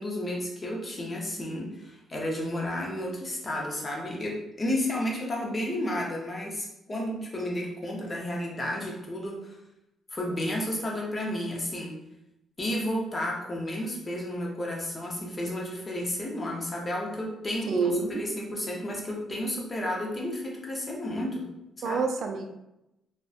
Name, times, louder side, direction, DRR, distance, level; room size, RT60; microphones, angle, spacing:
voice 1, 0.0-9.6 10.1-11.9 12.6-21.5 21.8-22.0, left 1 dB, 30° left, -2 dB, 0.6 m, -32 dB
voice 2, 17.7-18.3 21.8-22.5, right 4 dB, 60° right, 4 dB, 0.3 m, -28 dB
2.5 x 2.1 x 2.3 m, 0.88 s
cardioid pair, 90°, 0 cm